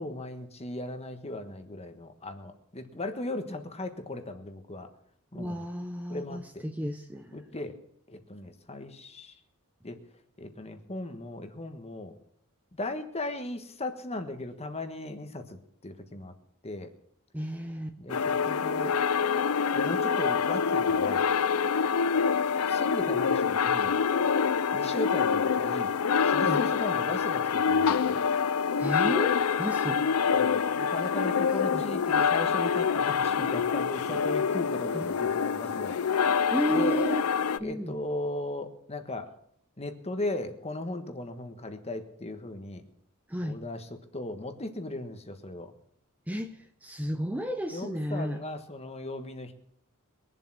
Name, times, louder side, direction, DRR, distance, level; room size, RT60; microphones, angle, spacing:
voice 1, 0.0-4.9 5.3-5.6 6.1-6.7 7.3-7.8 8.1-9.3 9.8-10.0 10.4-12.2 12.8-16.3 16.6-16.9 18.0-19.0 19.7-21.2 22.7-23.9 24.7-25.9 26.2-28.2 30.3-36.0 36.7-36.9 37.6-39.3 39.8-42.9 43.4-45.7 47.7-49.5, left 2 dB, 30° left, 8 dB, 1.4 m, -37 dB
voice 2, 5.3-7.3 17.3-17.9 26.4-26.6 28.8-30.0 31.7-31.9 34.9-35.1 36.5-37.2 37.6-37.9 43.3-43.6 46.3-48.4, equal, 5° right, 6 dB, 0.7 m, -32 dB
sound 1, 18.1-37.6, left 6 dB, 75° left, 0.5 m, -26 dB
22.5 x 7.6 x 6.0 m, 0.71 s
head